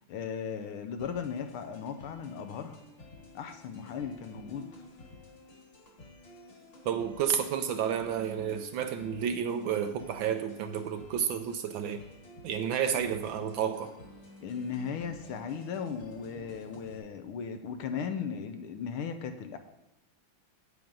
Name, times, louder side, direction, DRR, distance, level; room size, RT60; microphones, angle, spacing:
voice 1, 0.1-2.8 3.3-4.7 14.4-19.6, left 6 dB, 80° left, 7 dB, 1.7 m, -37 dB
sound 1, 1.0-17.0, left 2 dB, 55° left, 2.7 m, -52 dB
voice 2, 6.8-12.0 12.4-13.9, right 8 dB, 75° right, 8 dB, 1.2 m, -31 dB
9.1 x 8.9 x 3.9 m, 0.96 s
omnidirectional pair, 2.4 m